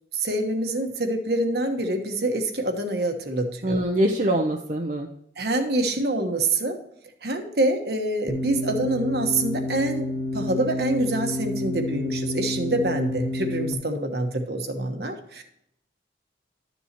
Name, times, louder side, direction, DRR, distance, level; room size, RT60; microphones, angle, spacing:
voice 1, 0.1-3.8 5.4-6.8 7.2-15.4, right 2 dB, 60° right, 5 dB, 1.3 m, -26 dB
voice 2, 3.6-5.1, right 1 dB, 45° right, 1 dB, 0.8 m, -23 dB
sound 1, 8.3-13.7, left 2 dB, 15° right, 1.4 m, -29 dB
12.0 x 7.1 x 3.0 m, 0.74 s
head